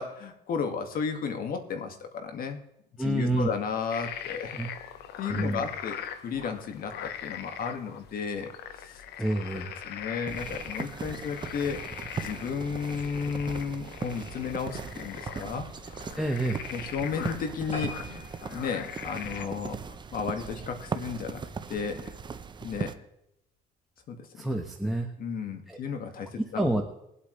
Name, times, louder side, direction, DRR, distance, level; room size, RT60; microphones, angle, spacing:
voice 1, 0.0-2.6 3.0-4.6 5.2-8.5 8.8-9.0 9.5-11.8 12.2-15.7 16.7-18.2 18.5-21.4 21.7-22.1 22.6-23.0 24.1-24.5 25.2-26.6, left 6 dB, 60° left, 6 dB, 2.0 m, -33 dB
voice 2, 3.0-3.5 4.6-4.7 5.3-5.7 9.2-9.7 16.2-16.6 24.4-25.1 25.7-25.8 26.5-26.8, right 1 dB, ahead, 4 dB, 1.3 m, -28 dB
sound 1, 3.9-19.5, left 9 dB, 75° left, 1.1 m, -41 dB
sound 2, 10.3-23.0, right 5 dB, 25° right, 0.8 m, -39 dB
sound 3, 17.7-20.5 20.9-21.1 21.6-21.7 22.0-22.1 22.3-22.4, left 1 dB, 40° left, 4.4 m, -43 dB
21.5 x 8.4 x 3.3 m, 0.82 s
cardioid pair, 110°, 17 cm